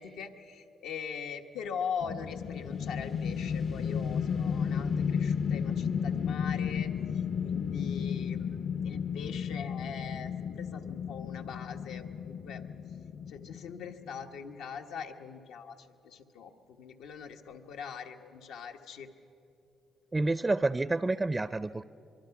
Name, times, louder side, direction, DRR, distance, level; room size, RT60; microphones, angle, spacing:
voice 1, 0.0-12.6 13.3-19.1, left 6 dB, 90° left, 4 dB, 1.2 m, -42 dB
sound 1, 2.0-14.2, left 7 dB, 55° left, 0.6 m, -33 dB
voice 2, 20.1-21.8, right 2 dB, 20° right, 14 dB, 0.4 m, -29 dB
25.0 x 23.5 x 5.9 m, 2.9 s
cardioid pair, 90°, 0 cm